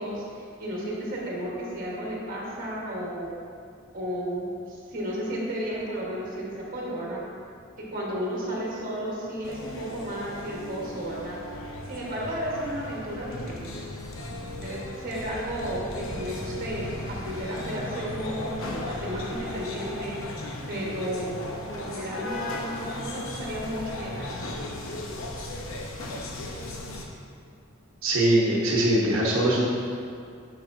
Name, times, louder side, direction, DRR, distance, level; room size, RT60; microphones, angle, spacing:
voice 1, 0.0-3.4 3.9-7.2 7.8-11.4 11.9-13.7 14.6-18.5 18.9-20.2 20.7-21.3 21.7-24.5, equal, 45° right, -4 dB, 1.3 m, -33 dB
sound 1, 9.4-27.1, left 1 dB, 80° left, 0.7 m, -36 dB
voice 2, 28.0-29.6, right 1 dB, 80° right, -5 dB, 0.9 m, -22 dB
6.8 x 6.1 x 2.6 m, 2.3 s
head